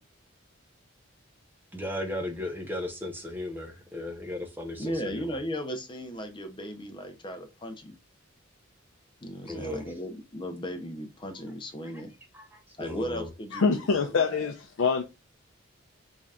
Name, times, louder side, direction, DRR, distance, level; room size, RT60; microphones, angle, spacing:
voice 1, 1.7-5.4 9.5-9.8 12.8-13.3, left 1 dB, 10° right, 0.7 m, -35 dB
voice 2, 4.8-8.0 9.2-12.1 12.8-14.5, equal, 25° left, 0.7 m, -36 dB
voice 3, 13.5-15.0, left 5 dB, 70° left, 0.5 m, -25 dB
3.9 x 3.3 x 2.3 m
head